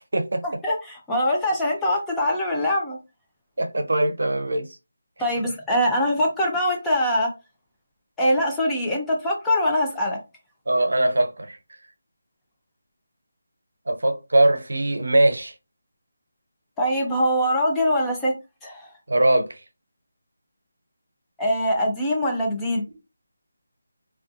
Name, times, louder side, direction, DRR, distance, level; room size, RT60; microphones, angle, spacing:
voice 1, 0.6-3.0 5.2-7.3 8.2-10.2 16.8-18.3 18.6-18.9 21.4-22.8, equal, 5° left, 0.4 m, -23 dB
voice 2, 3.6-4.7 10.7-11.6 13.9-15.5 19.1-19.6, right 1 dB, 80° right, 0.6 m, -21 dB
2.5 x 2.3 x 2.4 m
figure-of-eight pair, 175°, 0 cm